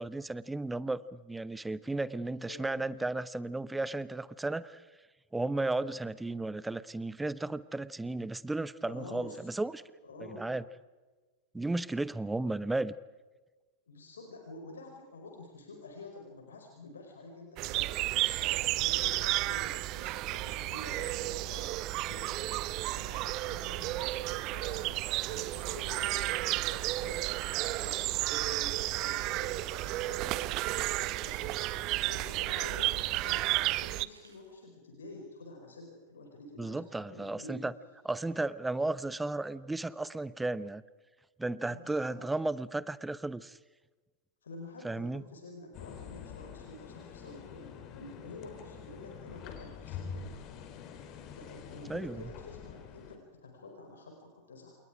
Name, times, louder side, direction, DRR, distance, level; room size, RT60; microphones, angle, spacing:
voice 1, 0.0-4.8 5.3-9.8 10.3-10.6 11.5-12.9 36.6-37.7 38.1-40.8 41.4-43.6 44.8-45.2 51.9-52.2, right 2 dB, 5° right, 18 dB, 0.9 m, -34 dB
voice 2, 2.4-2.9 8.9-9.4 10.0-10.6 13.9-37.7 41.7-42.2 44.4-50.4 51.3-54.7, left 2 dB, 70° left, 3 dB, 4.8 m, -49 dB
sound 1, 17.6-34.1, right 18 dB, 40° right, 0.7 m, -32 dB
sound 2, 28.7-34.6, right 3 dB, 70° right, 5.5 m, -58 dB
sound 3, 45.7-53.2, left 7 dB, 40° left, 3.6 m, -46 dB
29.5 x 28.5 x 5.0 m, 1.3 s
figure-of-eight pair, 90°, 0 cm